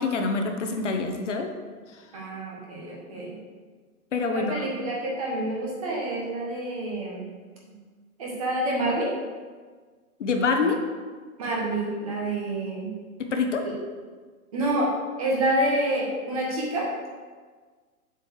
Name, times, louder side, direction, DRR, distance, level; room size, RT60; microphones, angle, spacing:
voice 1, 0.0-1.5 4.1-4.7 10.2-10.8 13.3-13.7, left 4 dB, 50° left, 4 dB, 0.9 m, -25 dB
voice 2, 2.1-3.3 4.3-7.2 7.7-7.8 8.2-9.1 11.4-12.9 13.6-13.7 14.5-14.9 15.2-17.1, right 1 dB, 25° right, -3 dB, 1.3 m, -28 dB
8.0 x 4.5 x 6.5 m, 1.5 s
hypercardioid pair, 180°, 45 cm